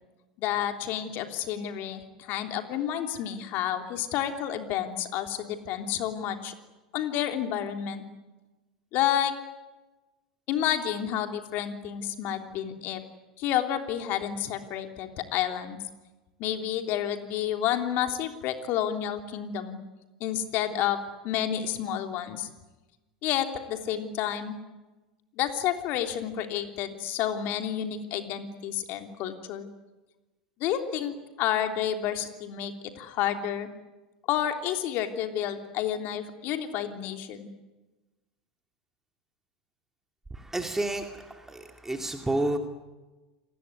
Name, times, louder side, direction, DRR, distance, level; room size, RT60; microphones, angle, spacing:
voice 1, 0.4-6.5 6.9-8.0 8.9-9.3 10.5-13.0 13.4-15.8 16.4-19.8 20.2-21.0 21.2-22.5 23.2-24.6 25.3-29.7 30.6-33.7 34.3-37.5, left 10 dB, 50° left, 6 dB, 3.3 m, -30 dB
voice 2, 40.3-42.6, right 2 dB, 10° right, 4 dB, 2.6 m, -30 dB
29.0 x 20.0 x 9.8 m, 1.1 s
hypercardioid pair, 85°, 4 cm